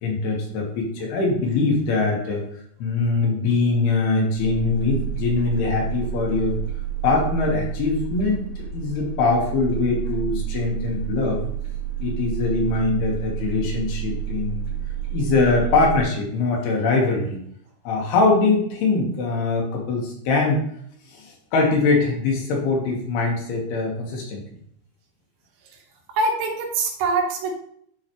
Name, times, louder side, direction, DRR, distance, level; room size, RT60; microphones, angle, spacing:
voice 1, 0.0-2.4 2.8-6.6 7.0-11.4 12.0-14.7 15.1-17.4 17.8-20.6 21.1-24.4, left 3 dB, 70° left, -1 dB, 3.1 m, -22 dB
sound 1, 4.4-16.0, right 10 dB, 35° left, 2.7 m, -30 dB
voice 2, 26.1-27.6, right 3 dB, 85° right, 1 dB, 3.5 m, -24 dB
11.0 x 3.8 x 3.0 m, 0.68 s
omnidirectional pair, 5.1 m